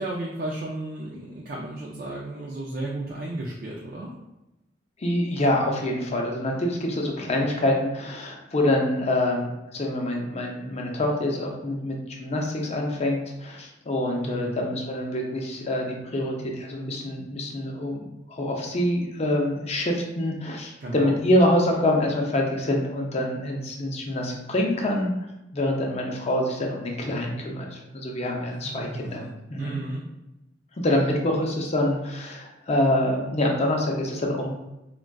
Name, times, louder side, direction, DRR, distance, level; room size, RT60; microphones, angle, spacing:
voice 1, 0.0-4.1 14.2-14.7 20.8-21.2 28.5-30.0, right 1 dB, 50° right, -3 dB, 0.4 m, -34 dB
voice 2, 5.0-25.1 25.5-29.2 29.5-29.8 30.8-34.5, left 1 dB, 35° left, 1 dB, 0.5 m, -26 dB
3.6 x 2.2 x 2.2 m, 0.94 s
head